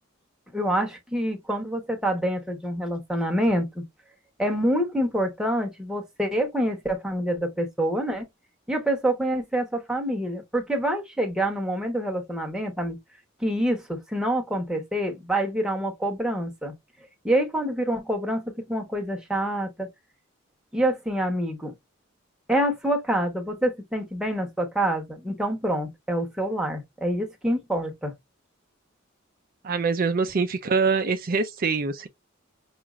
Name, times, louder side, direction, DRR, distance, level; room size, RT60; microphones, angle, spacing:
voice 1, 0.5-3.8 4.4-8.3 8.7-13.0 13.4-16.7 17.2-19.9 20.7-21.7 22.5-28.1, right 1 dB, 5° right, 1.0 m, -26 dB
voice 2, 29.6-32.1, right 4 dB, 45° right, 0.4 m, -24 dB
5.8 x 2.5 x 3.0 m
head